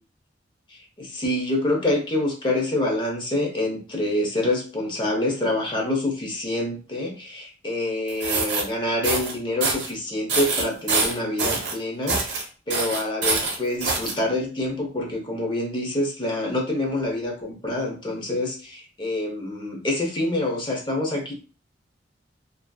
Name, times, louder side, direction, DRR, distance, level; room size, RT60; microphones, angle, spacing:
voice 1, 0.7-21.3, left 1 dB, 25° left, 1 dB, 0.6 m, -26 dB
sound 1, 8.1-8.6 9.0-9.3 9.6-9.9 10.3-11.7 12.1-12.4 12.7-14.1, right 3 dB, 65° right, 0.7 m, -25 dB
2.5 x 2.4 x 2.2 m, 0.37 s
head